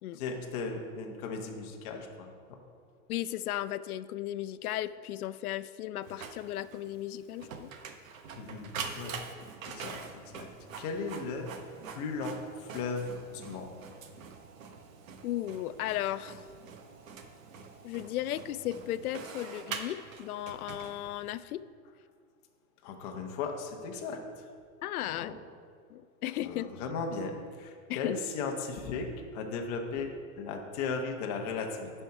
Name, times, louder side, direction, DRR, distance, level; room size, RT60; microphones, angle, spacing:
voice 1, 0.1-2.6 8.4-9.1 9.7-10.5 10.8-11.5 11.9-13.7 22.8-24.2 25.1-25.3 26.4-27.3 27.6-30.1 30.4-31.9, left 4 dB, 30° left, 2 dB, 0.8 m, -36 dB
voice 2, 3.1-7.7 9.8-9.9 15.2-16.4 17.8-21.6 24.8-25.3 25.9-26.7 27.9-28.1, left 13 dB, 80° left, 15 dB, 0.5 m, -35 dB
Printer, 6.0-21.4, right 5 dB, 65° right, 1.0 m, -45 dB
9.9 x 5.5 x 4.7 m, 2.1 s
supercardioid pair, 165°, 43 cm